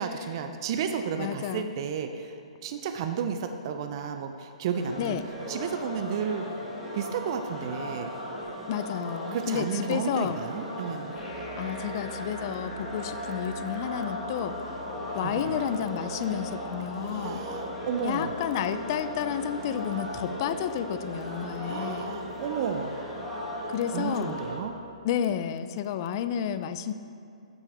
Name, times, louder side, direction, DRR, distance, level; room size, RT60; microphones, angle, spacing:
voice 1, 0.0-5.2 5.5-6.5 6.9-8.1 9.3-11.2 15.2-15.6 17.0-18.3 21.6-23.0 23.9-24.7, right 7 dB, 45° right, 6 dB, 0.4 m, -32 dB
voice 2, 1.2-1.7 5.0-5.2 8.7-10.4 11.6-14.6 15.1-17.4 18.0-22.2 23.7-24.4 25.0-26.9, left 9 dB, 40° left, 11 dB, 0.3 m, -31 dB
sound 1, 4.7-24.5, left 1 dB, ahead, 1.3 m, -37 dB
sound 2, 11.2-25.1, equal, 70° left, 1.3 m, -44 dB
7.6 x 6.1 x 3.4 m, 2.5 s
hypercardioid pair, 150°, 3 cm